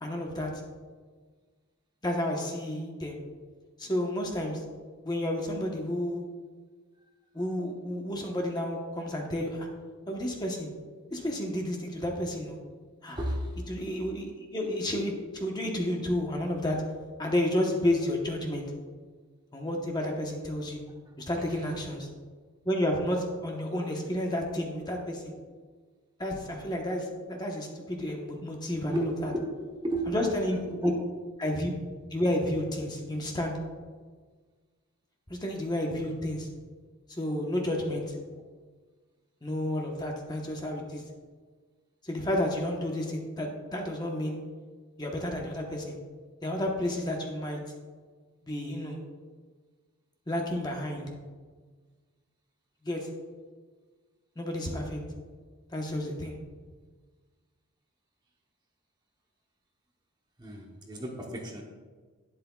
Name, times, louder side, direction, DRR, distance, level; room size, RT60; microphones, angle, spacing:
voice 1, 0.0-0.5 2.0-3.2 3.8-4.6 5.0-6.2 7.3-9.7 10.1-10.7 11.1-12.6 13.0-13.2 13.7-16.8 17.2-18.7 19.5-20.8 21.2-22.1 22.6-25.3 26.2-29.3 30.1-30.9 31.4-31.7 32.1-33.6 35.3-36.5 37.1-38.1 39.4-41.0 42.0-44.4 45.0-46.0 46.4-47.6 48.4-49.0 50.3-51.1 52.8-53.1 54.4-55.0 55.7-56.4, left 1 dB, 20° left, 0 dB, 1.0 m, -31 dB
voice 2, 13.1-13.6 21.3-21.6 28.9-29.5 29.8-30.2 30.5-31.0 60.4-61.6, right 1 dB, 20° right, 0 dB, 0.9 m, -33 dB
11.5 x 9.6 x 2.3 m, 1.5 s
head